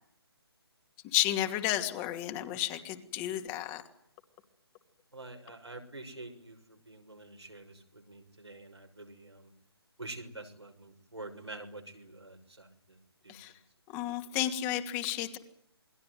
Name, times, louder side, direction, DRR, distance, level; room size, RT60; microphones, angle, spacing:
voice 1, 1.1-3.8 13.3-13.5 13.9-15.4, left 13 dB, 20° left, 6 dB, 2.6 m, -32 dB
voice 2, 5.1-9.5 10.0-12.7 13.2-13.3, right 2 dB, 85° right, 3 dB, 6.2 m, -47 dB
28.5 x 21.5 x 9.4 m, 0.74 s
figure-of-eight pair, 145°, 14 cm